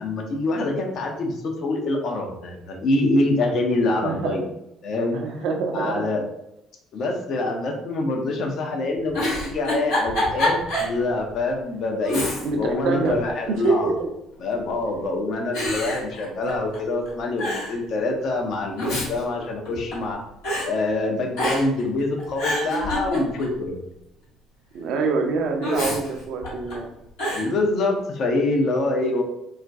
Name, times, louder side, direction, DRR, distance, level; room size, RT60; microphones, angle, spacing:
voice 1, 0.0-4.5 4.8-6.3 6.9-12.2 12.6-13.9 14.4-20.2 20.6-23.8 27.3-29.2, left 2 dB, 50° left, 2 dB, 0.5 m, -25 dB
voice 2, 4.0-4.4 5.1-6.0 12.4-13.1 13.5-13.9 24.7-26.9, right 4 dB, 55° right, 3 dB, 0.4 m, -25 dB
Giggle, 9.1-11.0 11.4-11.5 12.0-12.7 13.1-13.9 14.6-15.0 15.5-16.8 17.0-17.1 17.4-17.8 18.6-20.1 20.4-20.7 21.3-21.8 22.2-23.6 25.6-26.7 27.2-27.5, left 1 dB, 70° left, 1.0 m, -27 dB
2.3 x 2.1 x 2.5 m, 0.85 s
figure-of-eight pair, 50°, 0 cm